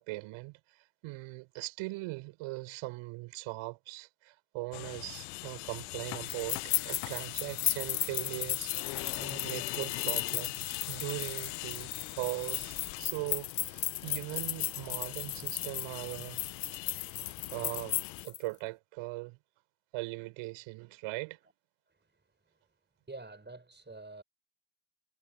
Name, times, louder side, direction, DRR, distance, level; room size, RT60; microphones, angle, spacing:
voice 1, 0.0-16.4 17.2-19.4 19.9-21.4, right 23 dB, 75° right, 5.5 m, -40 dB
sound 1, 4.7-18.3, left 26 dB, 80° left, 1.4 m, -42 dB
sound 2, 6.3-18.4, left 12 dB, 55° left, 1.4 m, -35 dB
voice 2, 23.1-24.2, right 2 dB, 20° right, 6.6 m, -46 dB
hypercardioid pair, 50°, 50 cm